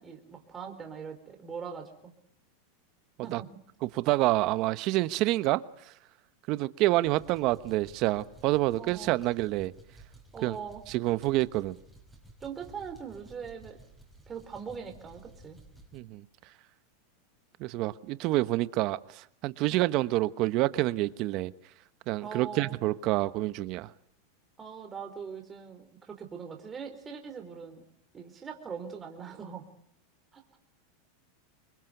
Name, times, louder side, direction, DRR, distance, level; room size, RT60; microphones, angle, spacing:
voice 1, 0.0-2.1 3.2-3.6 8.8-9.2 10.3-10.8 12.4-13.8 14.3-15.6 19.7-19.9 22.2-22.8 24.6-27.8 28.1-29.6 30.3-30.6, right 6 dB, 20° right, 4 dB, 4.4 m, -41 dB
voice 2, 3.9-5.6 6.5-9.7 10.4-10.6 10.9-11.8 15.9-16.2 17.6-21.5 22.1-23.9, right 18 dB, 45° right, 15 dB, 1.1 m, -27 dB
sound 1, 7.0-16.0, right 2 dB, ahead, 5.4 m, -54 dB
25.5 x 22.0 x 8.1 m, 0.70 s
supercardioid pair, 130°, 0 cm